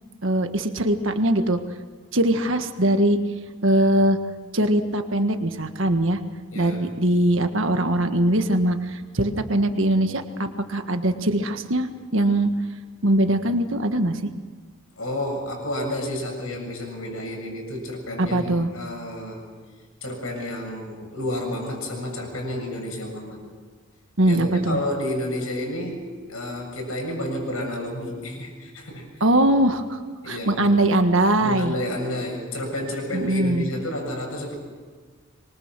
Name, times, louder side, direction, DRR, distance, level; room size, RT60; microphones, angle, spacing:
voice 1, 0.2-1.6 2.1-3.2 3.6-4.2 4.5-6.2 6.5-12.5 13.0-14.3 18.2-18.7 24.2-24.8 29.2-30.0 30.3-31.7 33.1-33.7, right 1 dB, 60° right, 7 dB, 1.6 m, -21 dB
voice 2, 15.0-19.5 20.0-23.4 24.2-29.1 30.2-30.6 31.4-34.6, left 1 dB, 70° left, 2 dB, 7.6 m, -30 dB
26.0 x 23.5 x 6.2 m, 1.5 s
head